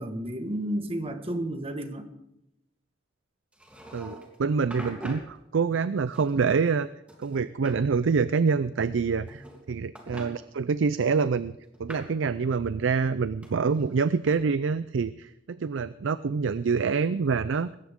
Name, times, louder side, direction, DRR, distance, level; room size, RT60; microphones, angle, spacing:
voice 1, 0.0-2.1 9.3-9.4, right 1 dB, 30° right, 7 dB, 1.6 m, -32 dB
sound 1, 3.5-4.4 4.7-5.3 6.1-6.8 7.1-7.8 9.0-9.6 9.9-10.3 11.1-12.2 13.4-14.3, equal, 5° right, 3.0 m, -44 dB
voice 2, 3.9-6.9 7.2-11.5 11.8-17.7, right 5 dB, 85° right, 15 dB, 0.5 m, -26 dB
20.0 x 17.0 x 3.7 m, 0.84 s
head